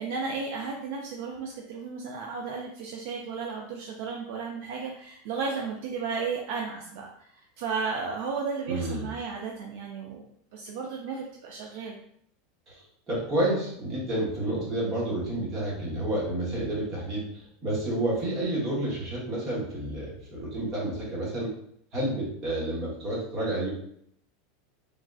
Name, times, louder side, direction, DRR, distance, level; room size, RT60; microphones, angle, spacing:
voice 1, 0.0-7.1 7.6-10.2 10.5-12.0, right 5 dB, 55° right, 0 dB, 0.3 m, -34 dB
voice 2, 8.7-9.1 12.7-21.5 21.9-23.7, right 1 dB, 20° right, -7 dB, 1.0 m, -30 dB
3.4 x 2.3 x 2.4 m, 0.68 s
supercardioid pair, 175°, 0 cm